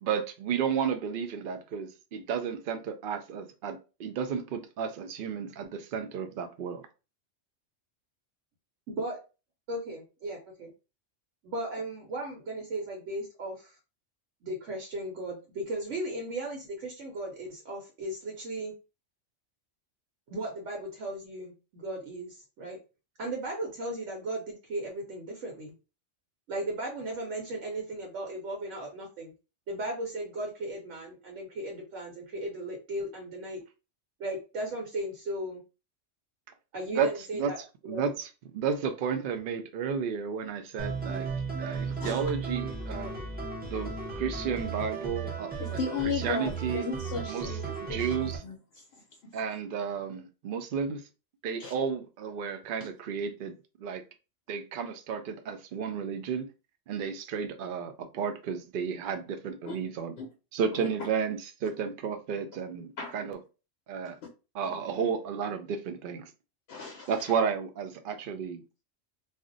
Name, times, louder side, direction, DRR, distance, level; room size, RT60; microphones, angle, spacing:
voice 1, 0.0-6.9 36.9-37.1 37.3-41.3 41.6-43.1 43.7-45.8 46.2-46.9 47.3-48.4 49.3-51.0 51.4-54.0 54.5-56.5 56.9-60.1 60.5-63.4 63.9-64.2 64.5-66.3 67.1-68.8, right 6 dB, 60° right, 0.6 m, -32 dB
voice 2, 8.9-9.2 9.7-10.7 11.4-13.7 14.4-18.7 20.3-22.8 23.2-25.7 26.5-29.3 29.7-33.6 34.2-35.6 36.7-37.6 37.8-38.1, right 1 dB, 80° right, 1.1 m, -36 dB
sound 1, 40.8-48.4, right 4 dB, 10° right, 0.4 m, -35 dB
voice 3, 45.6-48.6 51.6-51.7 52.8-52.9 59.7-59.8 60.2-60.3 63.0-63.1 64.0-64.1 64.6-64.8 66.7-67.1, left 5 dB, 65° left, 0.7 m, -35 dB
2.5 x 2.1 x 3.8 m
omnidirectional pair, 1.2 m